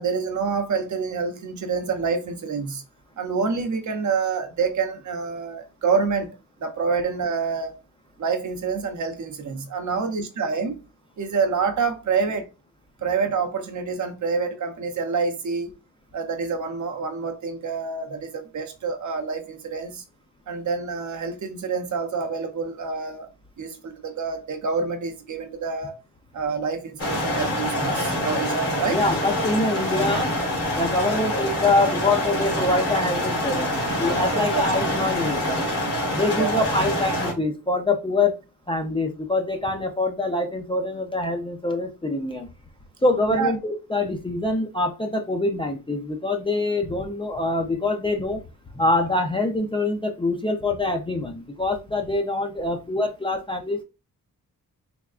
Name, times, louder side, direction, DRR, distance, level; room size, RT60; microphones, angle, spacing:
voice 1, 0.0-2.8 3.2-7.8 8.2-10.8 11.2-12.5 13.0-15.7 16.1-20.0 20.5-23.3 23.6-26.0 26.3-29.0 34.3-34.6 36.3-36.7 43.3-43.5, right 5 dB, 55° right, 0.7 m, -27 dB
sound 1, 27.0-37.3, left 1 dB, 40° left, 1.5 m, -25 dB
voice 2, 28.9-30.3 30.8-33.7 34.0-35.6 36.1-38.4 38.7-42.5 43.0-48.4 48.7-53.8, left 2 dB, 15° left, 0.4 m, -24 dB
3.5 x 3.3 x 2.4 m
wide cardioid pair, 140°, 36 cm